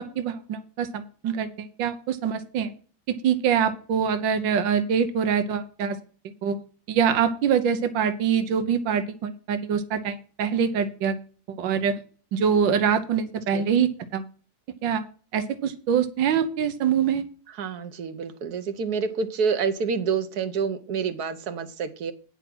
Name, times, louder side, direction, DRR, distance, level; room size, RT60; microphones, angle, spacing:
voice 1, 0.0-2.7 3.1-6.0 6.4-6.6 6.9-11.2 11.5-12.0 12.3-14.2 14.8-15.0 15.3-17.2, right 7 dB, 80° right, 10 dB, 1.7 m, -24 dB
voice 2, 17.5-22.1, right 6 dB, 60° right, 11 dB, 1.4 m, -28 dB
9.8 x 5.8 x 6.0 m, 0.41 s
omnidirectional pair, 2.0 m